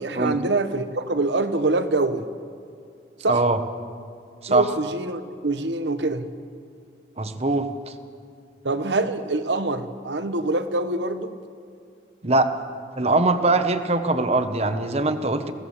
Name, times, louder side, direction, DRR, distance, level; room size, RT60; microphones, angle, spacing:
voice 1, 0.0-2.3 3.2-3.4 4.5-6.3 8.6-11.3, right 2 dB, 90° right, 10 dB, 1.2 m, -25 dB
voice 2, 3.3-3.6 4.4-4.7 7.2-7.9 12.2-12.5 13.0-15.5, right 2 dB, 35° right, 9 dB, 1.1 m, -22 dB
21.5 x 17.0 x 7.3 m, 2.4 s
head